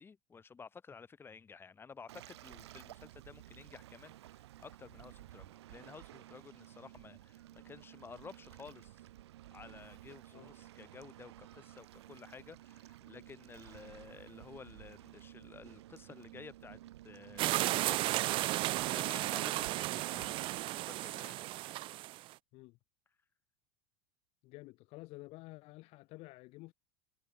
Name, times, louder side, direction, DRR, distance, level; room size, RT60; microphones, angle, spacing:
voice 1, 0.0-9.1 9.5-16.8 17.0-18.0 18.7-21.6, left 5 dB, 15° left, 5.0 m, -53 dB
Waves surf, 2.1-20.6, right 14 dB, 90° right, 4.3 m, -53 dB
sound 1, 17.4-22.3, right 18 dB, 40° right, 0.7 m, -34 dB
voice 2, 24.4-26.7, left 22 dB, 50° left, 2.8 m, -51 dB
supercardioid pair, 140°, 14 cm